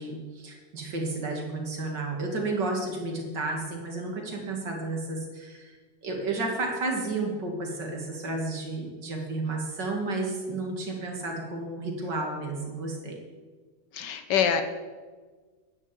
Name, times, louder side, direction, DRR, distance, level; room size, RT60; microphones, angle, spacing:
voice 1, 0.0-5.8 6.0-13.2, right 2 dB, 75° right, 1 dB, 2.9 m, -32 dB
voice 2, 13.9-14.6, left 8 dB, 75° left, 8 dB, 1.7 m, -25 dB
11.0 x 9.5 x 7.4 m, 1.4 s
omnidirectional pair, 1.9 m